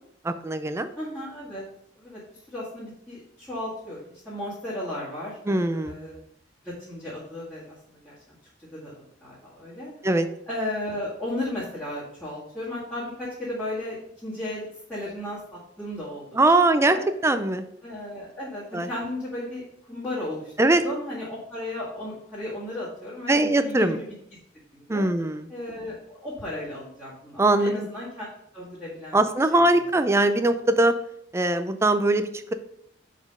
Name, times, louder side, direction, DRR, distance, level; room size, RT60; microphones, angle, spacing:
voice 1, 0.2-0.9 5.5-6.0 10.0-10.3 16.3-17.0 17.2-17.6 18.7-18.9 20.6-20.8 23.3-24.0 24.9-25.5 27.4-27.9 29.1-30.9 31.3-32.5, right 2 dB, 15° right, 10 dB, 0.4 m, -21 dB
voice 2, 1.0-1.6 2.0-6.2 6.6-8.4 8.7-8.9 9.2-9.9 10.5-16.4 16.9-17.1 17.8-24.1 24.7-25.1 25.5-28.3 28.5-29.2 29.5-29.6, left 1 dB, 10° left, -12 dB, 1.8 m, -35 dB
5.0 x 4.2 x 5.2 m, 0.74 s
head